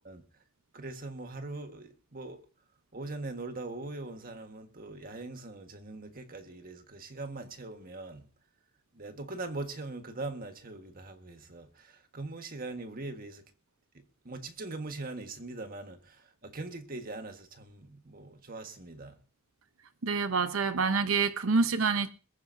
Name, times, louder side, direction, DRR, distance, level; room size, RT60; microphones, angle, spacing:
voice 1, 0.0-0.4 0.7-2.4 2.9-8.3 8.9-13.5 13.9-19.2, right 2 dB, 45° right, 1.6 m, -41 dB
voice 2, 20.0-22.1, right 4 dB, 70° right, 0.9 m, -27 dB
21.5 x 14.5 x 2.7 m
head